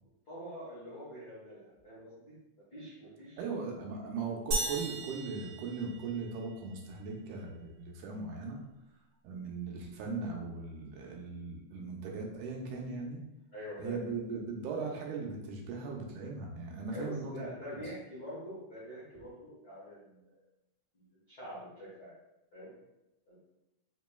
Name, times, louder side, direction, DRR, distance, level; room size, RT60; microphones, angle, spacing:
voice 1, 0.3-2.4 2.7-3.4 13.5-14.0 16.9-20.3 20.9-22.2 22.5-22.7 23.3-23.4, equal, 80° left, -9 dB, 0.8 m, -45 dB
voice 2, 3.4-8.6 9.2-13.2 13.8-17.8, right 4 dB, 80° right, 0 dB, 2.1 m, -39 dB
sound 1, 4.5-6.4, right 2 dB, 65° right, 1.8 m, -36 dB
5.2 x 3.0 x 2.2 m, 0.92 s
omnidirectional pair, 3.6 m